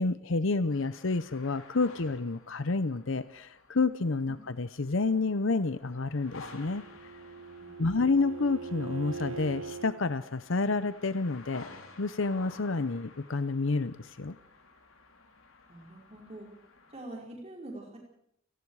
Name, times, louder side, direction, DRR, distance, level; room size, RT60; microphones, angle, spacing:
voice 1, 0.0-6.8 7.8-11.6 12.0-14.4, left 3 dB, 65° left, 13 dB, 0.8 m, -29 dB
sound 1, 0.7-17.0, left 3 dB, 85° left, 4.7 m, -53 dB
Bowed string instrument, 6.3-10.0, right 5 dB, 75° right, 1.3 m, -42 dB
voice 2, 7.6-8.2 15.7-16.5 16.9-18.0, right 1 dB, 30° right, -1 dB, 5.1 m, -45 dB
29.5 x 18.0 x 4.8 m, 0.72 s
head